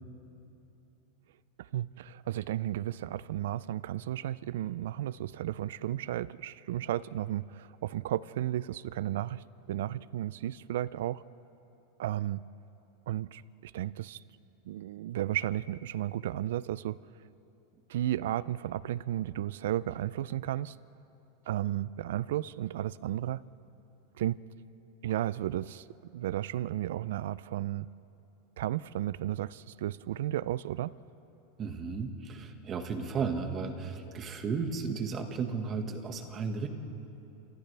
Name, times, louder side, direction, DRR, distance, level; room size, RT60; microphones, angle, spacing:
voice 1, 1.6-11.2 12.0-12.4 13.1-14.2 14.7-17.0 17.9-20.8 21.5-23.4 24.2-24.4 25.0-25.9 26.1-27.9 28.6-31.0, right 13 dB, 75° right, 19 dB, 0.4 m, -33 dB
voice 2, 31.6-36.7, right 5 dB, 25° right, 5 dB, 1.7 m, -34 dB
29.0 x 27.0 x 3.4 m, 2.9 s
supercardioid pair, 155°, 0 cm